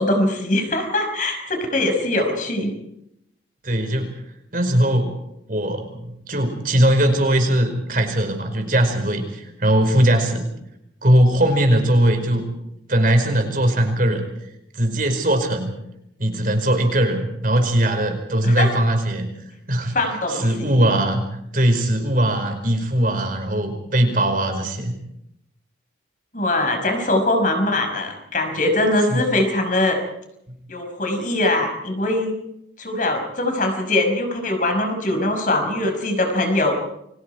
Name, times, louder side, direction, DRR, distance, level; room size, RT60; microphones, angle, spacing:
voice 1, 0.0-2.7 18.4-18.7 19.9-20.7 26.3-30.0 30.7-32.3 32.8-36.7, left 1 dB, 45° left, 5 dB, 5.5 m, -22 dB
voice 2, 3.6-4.1 4.5-5.1 5.5-10.5 11.0-12.5 12.9-14.2 14.7-15.7 16.2-19.3 19.7-19.9 20.3-21.3 21.5-25.0 29.1-29.2, right 1 dB, 45° right, 5 dB, 5.1 m, -20 dB
30.0 x 24.5 x 4.7 m, 0.81 s
head